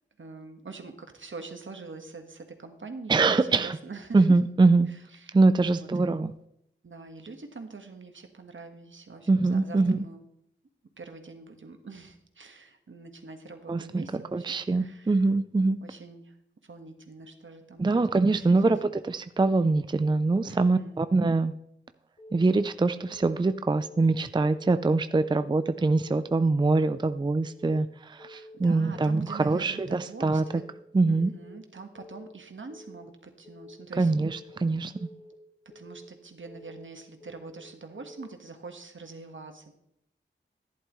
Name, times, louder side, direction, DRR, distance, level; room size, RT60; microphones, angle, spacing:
voice 1, 0.2-4.2 4.9-5.3 5.6-5.9 6.8-10.2 11.0-15.2 15.8-16.3 16.6-18.0 18.3-18.7 20.5-21.0 28.3-30.6 31.1-34.1 35.7-39.7, right 4 dB, 70° right, 5 dB, 1.5 m, -44 dB
voice 2, 3.1-3.8 4.1-4.9 5.3-6.3 9.3-10.0 13.7-15.8 17.8-21.5 22.3-30.4 30.9-31.3 34.0-35.1, right 3 dB, 20° right, 12 dB, 0.4 m, -24 dB
Keyboard (musical) / Alarm, 22.2-22.5 22.9-23.3 23.7-24.0 24.4-24.8 25.2-25.6 25.9-26.3 26.7-27.1 27.4-27.8 28.2-28.6 28.9-29.3 29.7-30.1 30.4-30.8 31.2-31.6 31.9-32.3 32.7-33.1 33.4-33.8 34.2-34.6 34.9-35.3 35.7-36.1 36.4-36.8 37.2-37.6 37.9-38.3, left 1 dB, 45° left, 3.4 m, -49 dB
11.0 x 11.0 x 3.1 m, 0.76 s
wide cardioid pair, 60°, 21 cm